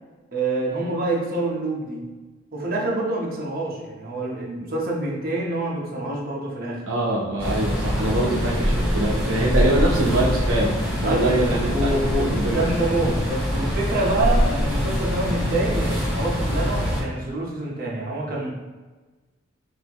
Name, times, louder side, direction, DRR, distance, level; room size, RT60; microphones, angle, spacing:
voice 1, 0.3-2.0 2.5-6.8 11.0-11.3 11.7-18.5, right 2 dB, 50° right, -3 dB, 0.9 m, -26 dB
voice 2, 6.9-10.7 11.0-12.6, right 1 dB, 80° right, -3 dB, 0.7 m, -23 dB
sound 1, 7.4-17.0, equal, 10° right, 1.3 m, -24 dB
5.5 x 2.7 x 3.0 m, 1.3 s
head